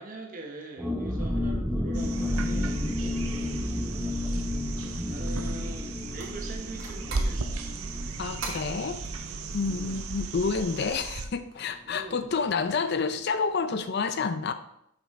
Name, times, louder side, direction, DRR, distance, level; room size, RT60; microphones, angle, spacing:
voice 1, 0.0-2.8 3.1-4.1 5.1-7.7 9.7-10.1 11.8-12.3, right 2 dB, 40° right, 2 dB, 0.9 m, -43 dB
sound 1, 0.8-10.2 10.5-10.6 10.9-11.2, left 1 dB, 5° right, 0.7 m, -32 dB
sound 2, 1.9-11.3 13.4-13.5, right 3 dB, 85° right, 0.6 m, -36 dB
sound 3, 6.1-13.3, right 3 dB, 60° right, 1.3 m, -46 dB
voice 2, 8.2-9.0 9.5-14.5, left 5 dB, 50° left, 10 dB, 0.4 m, -29 dB
5.8 x 5.3 x 4.2 m, 0.74 s
head